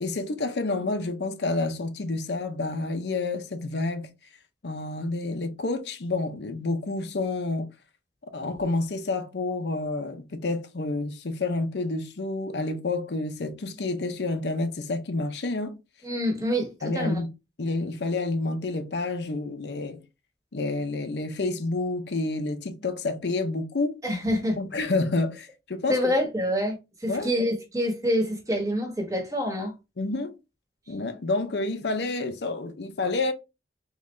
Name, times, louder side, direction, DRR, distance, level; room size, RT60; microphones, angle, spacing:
voice 1, 0.0-4.1 4.6-7.7 8.3-15.8 16.8-17.3 17.6-20.0 20.5-24.0 24.6-26.0 27.1-27.3 30.0-30.4 30.9-33.3, left 2 dB, 70° left, 0.6 m, -29 dB
voice 2, 16.0-16.7 16.9-17.2 24.0-24.6 25.9-26.7 27.0-29.7, equal, 20° right, 1.1 m, -26 dB
3.7 x 3.1 x 3.2 m
head